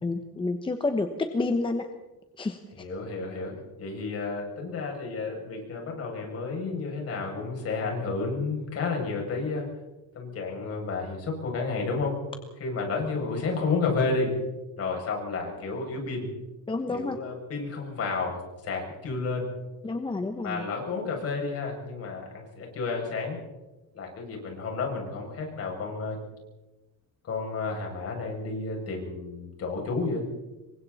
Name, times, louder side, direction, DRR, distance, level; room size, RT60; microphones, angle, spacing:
voice 1, 0.0-1.9 2.4-2.6 16.7-17.2 19.8-20.6, left 3 dB, 15° left, 6 dB, 1.1 m, -29 dB
voice 2, 2.8-9.7 10.1-12.2 12.6-14.3 14.8-16.3 16.9-19.5 20.4-23.4 23.9-26.2 27.2-30.2, left 4 dB, 45° left, 1 dB, 7.5 m, -31 dB
27.5 x 23.5 x 4.3 m, 1.1 s
cardioid pair, 170°, 33 cm